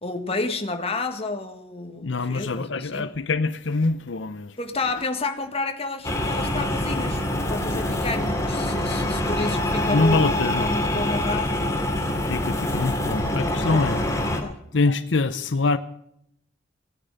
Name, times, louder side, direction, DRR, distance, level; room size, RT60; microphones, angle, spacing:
voice 1, 0.0-3.1 4.6-7.2 7.5-10.3 10.6-11.6 13.0-14.7, left 3 dB, 30° left, 1.7 m, -31 dB
voice 2, 2.0-4.6 9.8-10.7 12.2-14.0 14.7-15.8, left 3 dB, 80° left, 0.8 m, -24 dB
sound 1, 6.0-14.4, left 1 dB, 15° left, 2.5 m, -25 dB
18.0 x 10.0 x 6.6 m
head